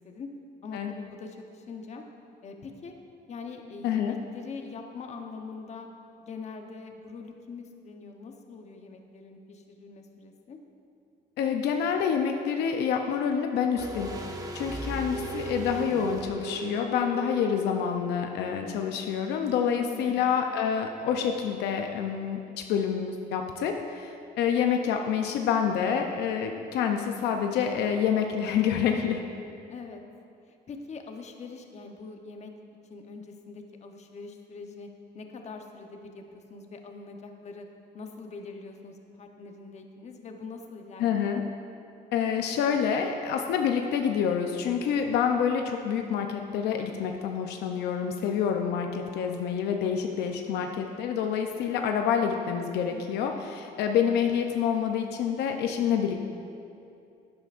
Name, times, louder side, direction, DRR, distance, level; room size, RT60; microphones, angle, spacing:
voice 1, 0.6-2.0 2.4-2.9 3.3-5.9 6.2-10.6 19.7-20.2 29.7-30.0 30.7-32.5 32.9-34.9 35.1-37.6 37.9-41.4 52.9-53.4, left 4 dB, 40° left, 4 dB, 0.9 m, -43 dB
voice 2, 3.8-4.1 11.4-14.1 14.5-22.4 22.7-29.2 41.0-41.4 42.1-56.2, left 7 dB, 80° left, 4 dB, 0.6 m, -27 dB
sound 1, 13.8-18.6 18.9-19.0, right 3 dB, 20° right, 0.9 m, -37 dB
11.5 x 9.3 x 2.5 m, 2.6 s
cardioid pair, 110°, 17 cm